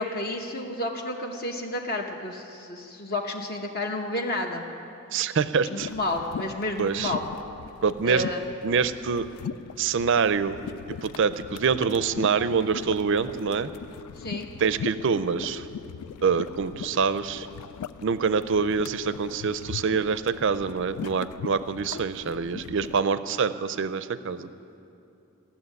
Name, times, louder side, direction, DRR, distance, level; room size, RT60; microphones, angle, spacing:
voice 1, 0.0-4.6 5.6-7.2 8.0-8.4 14.2-14.5, left 1 dB, 45° left, 1 dB, 1.0 m, -31 dB
voice 2, 5.1-5.9 6.8-7.1 7.8-8.2 8.6-9.3 9.8-10.6 10.9-13.7 14.6-15.6 16.2-17.5 18.0-24.5, right 5 dB, 55° right, 13 dB, 0.5 m, -25 dB
sound 1, 5.8-23.0, left 8 dB, 85° left, 0.3 m, -40 dB
16.0 x 7.2 x 9.6 m, 2.7 s
head